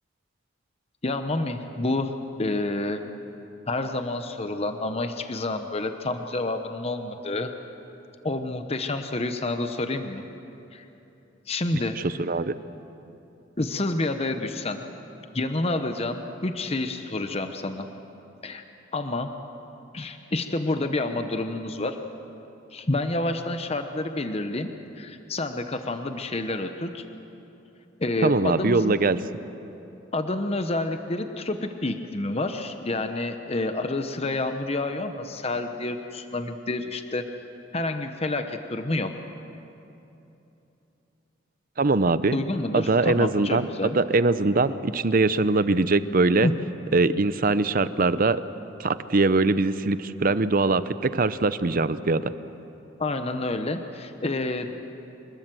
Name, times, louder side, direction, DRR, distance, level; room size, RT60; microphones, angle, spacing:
voice 1, 1.0-3.0 3.7-7.5 8.2-10.2 10.7-10.8 11.5-12.0 13.6-14.8 15.3-17.9 18.4-18.6 18.9-19.4 19.9-22.0 22.7-27.0 28.0-29.0 30.1-37.2 37.7-39.1 42.3-44.0 46.4-46.6 53.0-54.7, left 2 dB, 30° left, 7 dB, 0.9 m, -28 dB
voice 2, 12.0-12.5 28.2-29.2 41.8-42.4 42.7-43.7 43.9-46.5 46.9-48.4 48.8-52.3, right 3 dB, 45° right, 14 dB, 0.7 m, -22 dB
25.5 x 20.5 x 7.7 m, 2.9 s
head